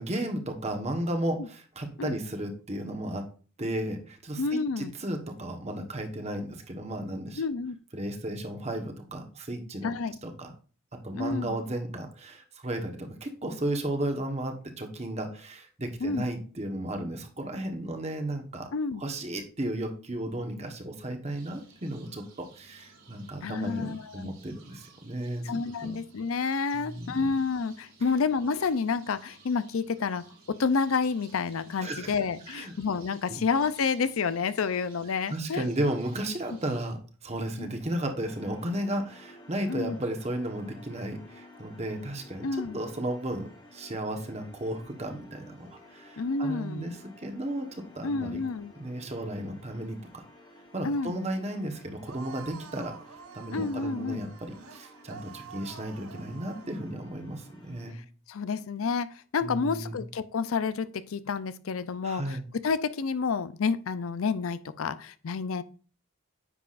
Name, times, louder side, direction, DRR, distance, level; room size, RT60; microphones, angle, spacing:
voice 1, 0.0-3.3 3.6-7.4 7.9-9.9 10.2-10.5 11.0-18.7 19.0-26.0 26.7-27.3 31.8-32.1 32.5-32.7 33.3-33.4 35.3-42.5 42.7-48.4 48.8-50.2 50.7-53.0 53.3-58.0 59.4-60.0 62.0-62.4, right 1 dB, 30° right, 4 dB, 1.2 m, -34 dB
voice 2, 4.4-4.9 7.4-7.8 9.8-10.1 11.1-11.6 16.0-16.3 18.7-19.0 23.4-24.3 25.4-35.7 37.6-37.7 39.7-40.0 42.4-42.8 46.2-46.9 48.0-48.7 50.8-51.1 53.5-54.3 57.9-58.0 58.3-62.4 62.6-65.6, left 5 dB, 75° left, 15 dB, 0.5 m, -29 dB
sound 1, 21.3-36.9, right 4 dB, 65° right, 3.9 m, -56 dB
sound 2, 38.2-57.9, left 2 dB, 20° left, 1.4 m, -53 dB
sound 3, 52.1-57.0, right 7 dB, 85° right, 0.7 m, -48 dB
9.8 x 6.9 x 2.5 m, 0.38 s
head